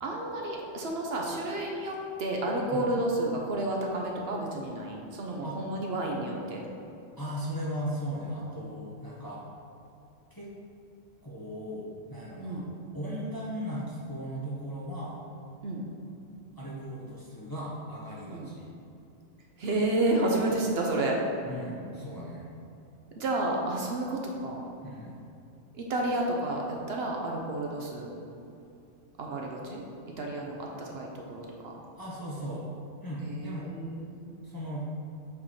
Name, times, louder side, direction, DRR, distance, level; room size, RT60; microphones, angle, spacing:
voice 1, 0.0-6.6 12.4-12.7 15.6-15.8 18.3-18.5 19.6-21.2 23.2-24.6 25.7-28.1 29.2-29.8 30.2-31.8 33.2-34.3, right 2 dB, 60° right, -1 dB, 0.9 m, -31 dB
voice 2, 7.2-9.5 10.3-10.5 11.2-12.6 12.9-15.2 16.6-18.7 21.5-22.4 24.8-25.2 32.0-32.6 33.0-33.7 34.4-34.9, equal, 20° left, -6 dB, 0.7 m, -37 dB
7.5 x 3.1 x 4.2 m, 2.7 s
omnidirectional pair, 1.3 m